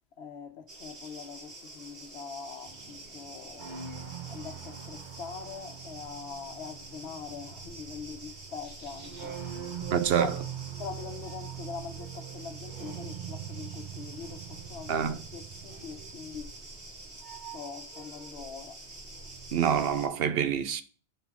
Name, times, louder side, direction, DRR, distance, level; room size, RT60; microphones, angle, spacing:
voice 1, 0.2-3.7 4.3-9.4 10.1-10.4 10.8-15.1 15.3-16.5 17.5-18.8, left 6 dB, 75° left, 1.1 m, -42 dB
sound 1, 0.7-20.1, right 2 dB, 90° right, 2.4 m, -47 dB
sound 2, 2.7-18.4 18.7-19.6, right 8 dB, 50° right, 1.0 m, -43 dB
voice 2, 9.9-10.3 14.9-15.2 19.5-20.8, right 8 dB, 70° right, 0.8 m, -26 dB
9.9 x 4.4 x 3.5 m
omnidirectional pair, 1.1 m